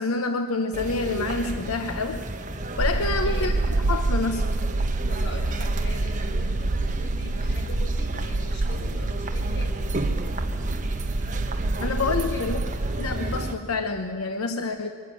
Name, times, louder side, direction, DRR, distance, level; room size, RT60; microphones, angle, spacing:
voice 1, 0.0-2.2 2.8-3.5 3.9-4.6 11.8-12.6 13.0-14.9, left 3 dB, 85° left, 7 dB, 0.8 m, -27 dB
sound 1, 0.7-13.5, right 1 dB, 35° right, 1.2 m, -32 dB
sound 2, 2.8-13.2, right 2 dB, 85° right, 0.8 m, -27 dB
voice 2, 3.0-3.5 5.1-10.2 12.0-12.5 14.8-14.9, left 1 dB, 55° left, 2 dB, 3.8 m, -41 dB
22.0 x 13.0 x 9.0 m, 2.5 s
head